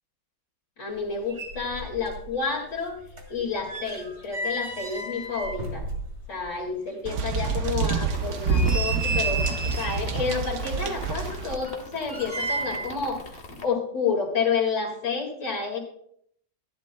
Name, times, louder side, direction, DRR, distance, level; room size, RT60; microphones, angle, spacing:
voice 1, 0.8-3.0 3.3-5.9 6.3-15.8, left 5 dB, 70° left, 0 dB, 2.8 m, -30 dB
sound 1, 1.0-1.1 1.3-2.3 2.6-6.5 6.9-7.0 7.5-7.6 8.2-10.1 11.0-13.0 13.3-13.4, right 2 dB, 35° right, 2.4 m, -33 dB
sound 2, 7.1-11.5, right 4 dB, 60° right, 1.2 m, -27 dB
sound 3, 8.1-13.6, left 2 dB, 40° left, 1.4 m, -43 dB
13.5 x 11.5 x 2.2 m, 0.67 s
omnidirectional pair, 2.0 m